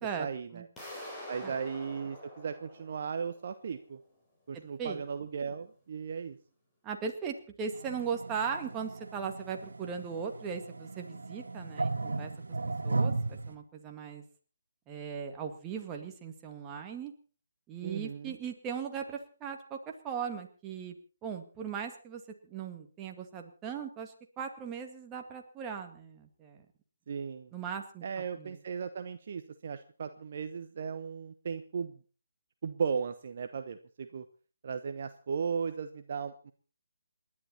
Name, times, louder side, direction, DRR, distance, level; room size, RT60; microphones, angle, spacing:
voice 1, 0.2-0.7 1.3-4.0 4.5-6.4 17.8-18.3 27.1-27.5 28.0-32.0 32.6-34.2 34.6-36.5, right 6 dB, 40° right, 9 dB, 1.0 m, -36 dB
sound 1, 0.8-3.6, left 1 dB, 10° left, 4.1 m, -46 dB
voice 2, 4.5-5.0 6.8-12.3 12.8-14.2 14.9-17.1 17.7-19.8 20.0-21.0 21.2-26.6 27.5-28.0 28.3-28.6, right 6 dB, 15° right, 3 dB, 2.1 m, -38 dB
sound 2, 7.7-13.5, right 3 dB, 60° right, 1.7 m, -36 dB
28.5 x 11.0 x 4.3 m, 0.38 s
figure-of-eight pair, 145°, 0 cm